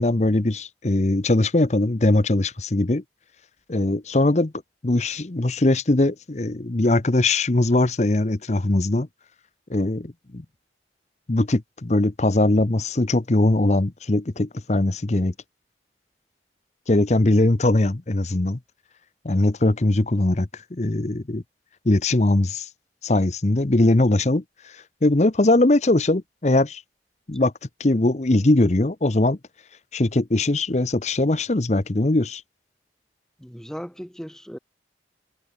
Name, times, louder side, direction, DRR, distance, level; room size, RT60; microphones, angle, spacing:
voice 1, 0.0-3.0 3.7-4.5 4.8-9.1 9.7-10.4 11.3-15.3 16.9-18.6 19.2-21.4 21.8-22.7 23.0-24.4 25.0-26.8 27.3-27.5 27.8-29.4 29.9-32.4, left 2 dB, 40° left, 0.8 m, -21 dB
voice 2, 33.4-34.6, equal, 5° left, 1.7 m, -37 dB
head